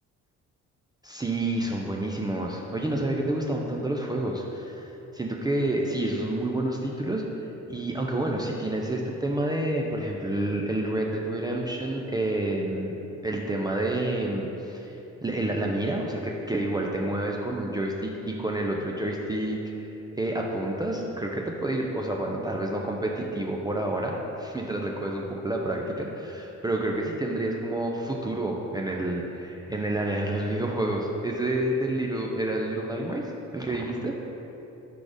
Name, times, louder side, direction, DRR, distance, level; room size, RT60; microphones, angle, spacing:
voice 1, 1.0-7.2 7.7-13.0 13.2-19.6 20.1-33.3 33.5-34.1, right 1 dB, 15° right, -1 dB, 0.4 m, -29 dB
4.9 x 4.0 x 5.0 m, 2.9 s
cardioid pair, 90°, 30 cm